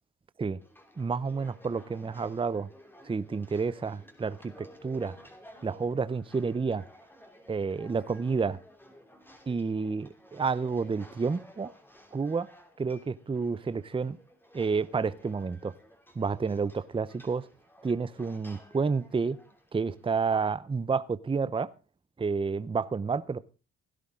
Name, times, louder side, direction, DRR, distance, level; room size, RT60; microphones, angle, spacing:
sound 1, 0.6-20.3, equal, 5° left, 2.9 m, -55 dB
voice 1, 1.0-2.7 3.0-5.1 5.6-6.8 7.5-8.6 9.5-11.7 12.1-12.5 12.8-14.2 14.5-15.7 16.2-17.5 17.8-19.4 19.7-21.7 22.2-23.4, right 5 dB, 15° right, 0.6 m, -30 dB
16.5 x 11.5 x 3.7 m
cardioid pair, 90°, 30 cm